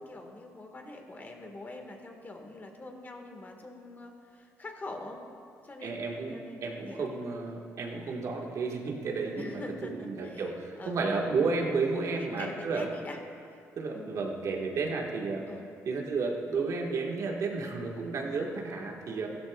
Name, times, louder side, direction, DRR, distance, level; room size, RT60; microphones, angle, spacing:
voice 1, 0.0-5.2 5.6-7.1 9.4-11.3 12.2-13.2 13.5-13.6 13.9-14.2 15.5-15.7, left 2 dB, 30° left, 3 dB, 1.7 m, -44 dB
voice 2, 5.8-12.9 13.8-15.5 15.8-19.3, right 4 dB, 60° right, 0 dB, 1.7 m, -32 dB
15.5 x 13.0 x 2.4 m, 2.4 s
supercardioid pair, 75°, 6 cm